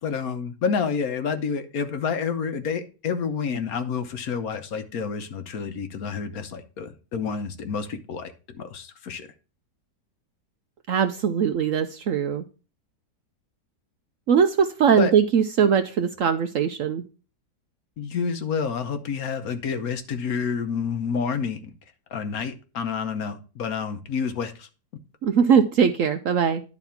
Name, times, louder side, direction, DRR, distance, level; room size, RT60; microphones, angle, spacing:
voice 1, 0.0-8.3 8.6-9.3 15.0-15.1 18.0-21.7 22.1-24.7, left 6 dB, 60° left, 8 dB, 1.2 m, -29 dB
voice 2, 10.9-12.4 14.3-17.0 25.2-26.6, right 7 dB, 65° right, 8 dB, 0.8 m, -21 dB
11.0 x 4.1 x 5.7 m, 0.35 s
omnidirectional pair, 1.8 m